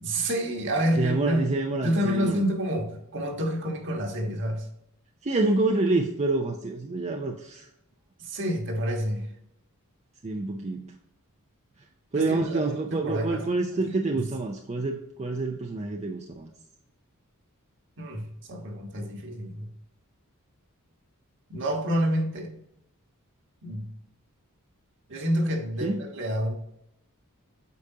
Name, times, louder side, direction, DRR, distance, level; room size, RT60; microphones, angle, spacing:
voice 1, 0.0-1.5 1.8-4.7 8.2-9.3 12.1-13.5 13.9-14.2 18.0-19.7 21.5-22.5 23.6-23.9 25.1-26.5, equal, 55° right, 2 dB, 1.5 m, -29 dB
voice 2, 1.0-2.5 5.2-7.7 10.2-10.9 12.1-16.5 25.8-26.0, right 3 dB, 30° right, 2 dB, 0.6 m, -27 dB
8.4 x 5.1 x 2.8 m, 0.80 s
head